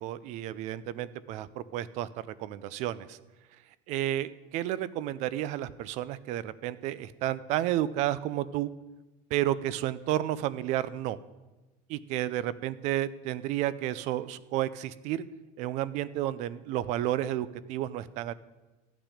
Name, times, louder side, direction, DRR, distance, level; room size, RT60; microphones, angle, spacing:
voice 1, 0.0-3.2 3.9-8.7 9.3-11.2 11.9-15.2 15.6-18.3, right 13 dB, 35° right, 18 dB, 0.4 m, -31 dB
13.5 x 9.0 x 5.0 m, 1.1 s
supercardioid pair, 170°, 21 cm